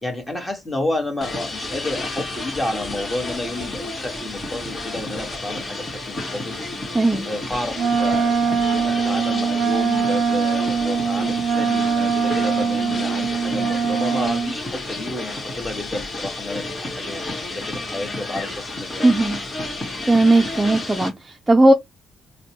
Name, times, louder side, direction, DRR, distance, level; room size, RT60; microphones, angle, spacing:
voice 1, 0.0-6.6 7.3-17.2 17.5-19.1, left 2 dB, 15° left, 1.4 m, -30 dB
sound 1, 1.2-21.1, left 2 dB, 35° left, 1.4 m, -31 dB
voice 2, 6.9-7.3 19.0-19.4 20.1-21.7, right 2 dB, 15° right, 0.5 m, -17 dB
Wind instrument woodwind instrument, 7.7-14.6, right 6 dB, 70° right, 0.5 m, -22 dB
4.2 x 2.2 x 2.9 m
cardioid pair, 90°, 0 cm